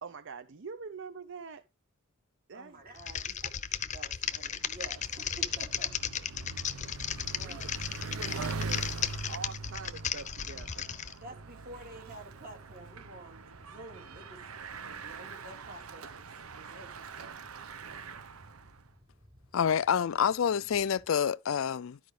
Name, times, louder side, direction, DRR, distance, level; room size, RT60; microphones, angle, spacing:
voice 1, 0.0-1.6 2.5-2.8 7.2-7.6 8.0-8.9 9.3-10.9, right 5 dB, 60° right, 0.6 m, -44 dB
voice 2, 2.5-6.0 7.2-7.7 11.2-14.4 14.9-17.4, right 2 dB, 45° right, 2.7 m, -50 dB
Wind, 2.7-21.1, equal, 25° right, 6.7 m, -61 dB
Typing, 3.0-11.1, left 8 dB, 35° left, 0.7 m, -35 dB
Bicycle, 4.2-18.9, right 4 dB, 90° right, 0.9 m, -43 dB
voice 3, 19.5-22.0, left 7 dB, 65° left, 0.4 m, -27 dB
12.5 x 5.0 x 4.8 m
head